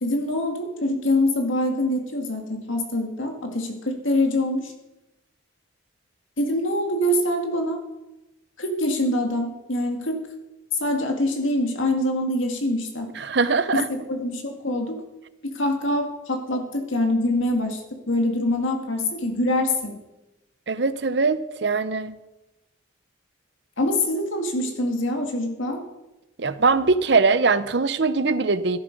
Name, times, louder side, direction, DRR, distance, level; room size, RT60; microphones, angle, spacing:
voice 1, 0.0-4.7 6.4-7.8 8.6-10.2 10.8-13.1 13.9-15.0 15.4-17.8 18.1-20.0 23.8-25.8, left 1 dB, 85° left, 3 dB, 2.1 m, -24 dB
voice 2, 13.2-13.8 20.7-22.1 26.4-28.8, right 4 dB, 60° right, 14 dB, 0.7 m, -21 dB
13.0 x 11.5 x 5.3 m, 0.99 s
head